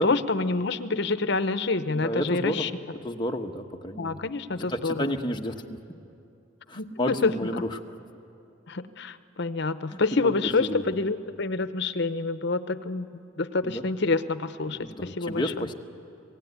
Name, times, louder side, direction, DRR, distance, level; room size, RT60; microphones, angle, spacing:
voice 1, 0.0-2.7 4.0-5.0 6.8-7.3 8.7-13.1 13.4-15.4, left 3 dB, 65° left, 12 dB, 0.9 m, -27 dB
voice 2, 1.9-2.7 3.0-4.3 4.6-5.8 6.7-7.8 9.9-10.8 13.6-13.8 14.7-15.7, equal, 25° left, 3 dB, 1.1 m, -31 dB
26.0 x 18.0 x 9.6 m, 2.6 s
head